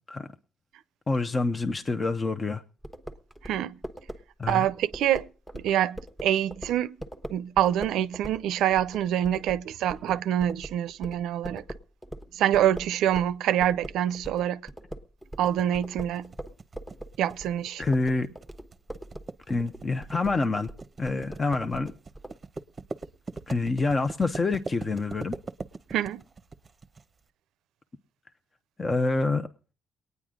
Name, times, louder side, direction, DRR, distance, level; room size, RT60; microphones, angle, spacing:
voice 1, 1.1-2.6 4.4-4.6 17.8-18.3 19.5-20.7 21.0-21.9 23.5-25.4 28.8-29.5, left 3 dB, 30° left, 0.8 m, -27 dB
sound 1, 2.8-13.4 13.6-22.4, right 1 dB, 5° left, 1.0 m, -41 dB
voice 2, 3.4-3.8 4.5-5.3 5.5-7.0 7.3-11.6 12.3-14.6 15.4-16.3 17.2-17.8 25.9-26.2, right 11 dB, 90° right, 0.5 m, -26 dB
sound 2, 15.4-27.0, right 3 dB, 30° right, 0.8 m, -41 dB
22.5 x 9.5 x 3.7 m
cardioid pair, 100°, 0 cm